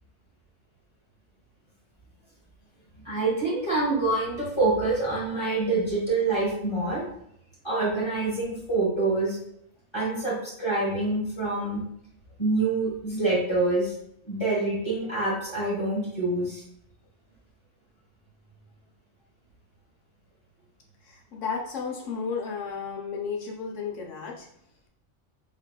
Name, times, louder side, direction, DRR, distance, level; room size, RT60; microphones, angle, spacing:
voice 1, 3.0-7.0 7.6-9.4 9.9-11.8 12.4-13.9 14.3-16.6, right 2 dB, 25° left, -6 dB, 1.2 m, -26 dB
voice 2, 21.0-24.5, left 5 dB, 75° left, 0 dB, 1.1 m, -33 dB
3.7 x 3.2 x 2.3 m, 0.74 s
omnidirectional pair, 1.3 m